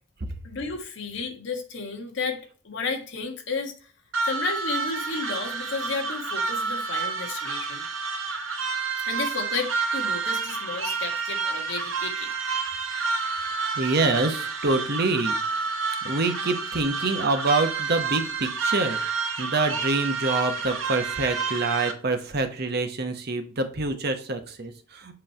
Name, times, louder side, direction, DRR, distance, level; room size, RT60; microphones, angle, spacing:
voice 1, 0.4-3.7 4.2-7.8 9.0-12.3, left 4 dB, 55° left, 1.4 m, -32 dB
sound 1, 4.1-21.9, right 4 dB, 70° right, 1.2 m, -29 dB
voice 2, 13.8-15.4 16.0-19.0 19.4-25.1, right 3 dB, 45° right, 0.9 m, -26 dB
7.7 x 3.3 x 4.3 m
head